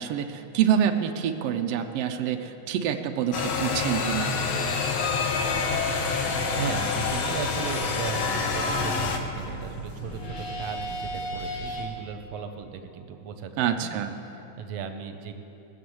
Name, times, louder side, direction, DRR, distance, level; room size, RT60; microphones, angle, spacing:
voice 1, 0.0-4.4 13.6-14.2, right 9 dB, 85° right, 5 dB, 1.4 m, -26 dB
sound 1, 3.3-9.2, left 5 dB, 80° left, 1.1 m, -27 dB
sound 2, 5.4-11.8, equal, 60° left, 4.5 m, -36 dB
voice 2, 6.6-14.0 14.3-15.4, right 7 dB, 70° right, 7 dB, 1.7 m, -36 dB
19.0 x 6.8 x 7.8 m, 3.0 s
omnidirectional pair, 3.6 m